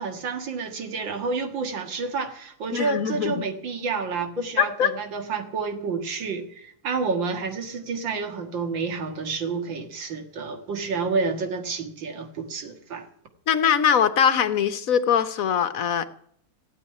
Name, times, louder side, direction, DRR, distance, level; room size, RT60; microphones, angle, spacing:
voice 1, 0.0-13.1, right 4 dB, 80° right, 2.5 m, -29 dB
voice 2, 2.7-3.4 4.6-4.9 13.5-16.0, left 8 dB, 55° left, 1.2 m, -22 dB
16.5 x 8.2 x 9.7 m
omnidirectional pair, 2.0 m